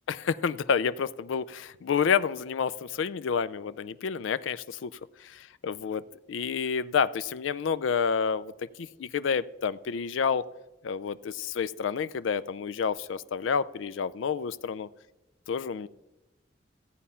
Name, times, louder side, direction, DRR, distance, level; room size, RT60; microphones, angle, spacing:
voice 1, 0.1-4.9 5.2-6.0 6.3-10.4 10.8-14.9 15.5-15.9, left 6 dB, 85° left, 15 dB, 0.4 m, -29 dB
14.5 x 8.5 x 5.6 m, 1.0 s
head